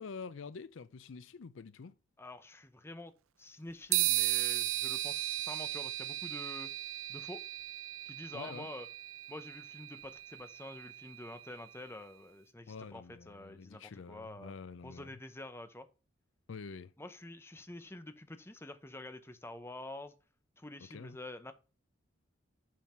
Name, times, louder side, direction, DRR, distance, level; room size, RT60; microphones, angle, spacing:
voice 1, 0.0-1.9 8.3-8.7 12.7-15.1 16.5-16.9 20.9-21.2, left 5 dB, 65° left, 0.5 m, -47 dB
voice 2, 2.2-3.1 3.4-6.7 7.1-7.4 8.1-8.9 9.3-14.5 14.8-15.9 17.0-20.1 20.6-21.5, left 1 dB, 10° left, 0.8 m, -47 dB
sound 1, 3.9-11.6, right 17 dB, 85° right, 0.5 m, -36 dB
7.5 x 5.6 x 5.7 m
head